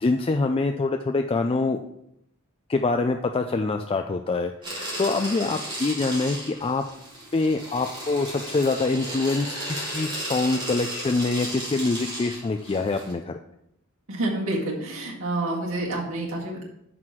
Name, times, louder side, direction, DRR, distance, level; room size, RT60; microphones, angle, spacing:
voice 1, 0.0-1.8 2.7-6.8 7.3-13.3, left 3 dB, 25° left, 5 dB, 0.4 m, -25 dB
sound 1, 4.6-13.1, right 1 dB, 20° right, 3.0 m, -34 dB
voice 2, 14.1-16.6, right 2 dB, 70° right, -6 dB, 2.0 m, -28 dB
7.7 x 5.9 x 4.6 m, 0.76 s
head